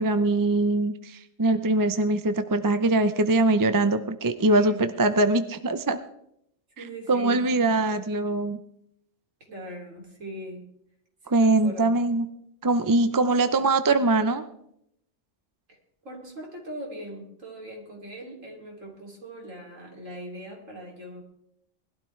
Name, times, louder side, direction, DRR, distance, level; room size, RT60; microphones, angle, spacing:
voice 1, 0.0-6.0 7.1-8.6 11.3-12.3 12.6-14.4, right 2 dB, 30° right, 10 dB, 0.4 m, -22 dB
voice 2, 4.5-4.9 6.8-7.4 9.5-10.6 11.3-11.9 15.7-21.2, right 1 dB, 70° right, -1 dB, 3.3 m, -40 dB
20.5 x 12.0 x 3.3 m, 0.75 s
omnidirectional pair, 1.4 m